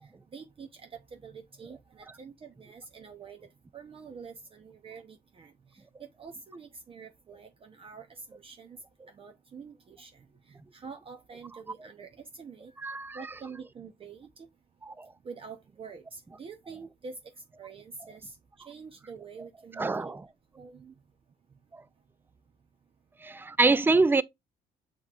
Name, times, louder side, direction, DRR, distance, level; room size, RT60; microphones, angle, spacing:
voice 1, 0.0-8.8 9.1-14.5 15.2-20.1 20.6-20.9, right 5 dB, 35° right, 0.7 m, -47 dB
voice 2, 12.8-13.2 14.9-15.1 19.8-20.2 21.7-21.8 23.2-24.2, right 3 dB, 10° right, 0.3 m, -25 dB
7.1 x 3.1 x 2.4 m
cardioid pair, 110°, 17 cm